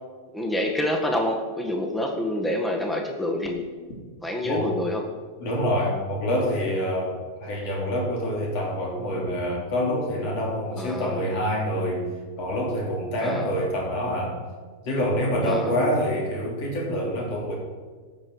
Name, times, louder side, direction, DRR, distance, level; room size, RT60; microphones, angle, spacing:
voice 1, 0.3-3.6 4.2-5.0 10.8-11.2 13.2-13.5 15.4-15.7, left 1 dB, 10° left, 3 dB, 1.7 m, -27 dB
voice 2, 5.4-12.1 12.4-14.4 14.8-17.5, equal, 50° left, -2 dB, 3.3 m, -26 dB
16.0 x 6.1 x 4.8 m, 1.5 s
figure-of-eight pair, 95°, 0 cm